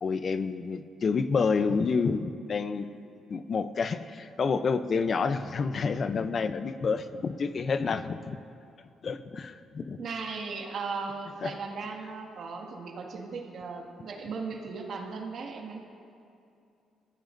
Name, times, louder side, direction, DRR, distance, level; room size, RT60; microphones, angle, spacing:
voice 1, 0.0-2.9 3.3-8.4 9.0-10.0 11.4-11.5, left 5 dB, 45° left, 11 dB, 0.6 m, -29 dB
voice 2, 10.0-15.8, right 4 dB, 60° right, 1 dB, 2.0 m, -37 dB
24.0 x 15.5 x 2.7 m, 2.6 s
cardioid pair, 90°, 0 cm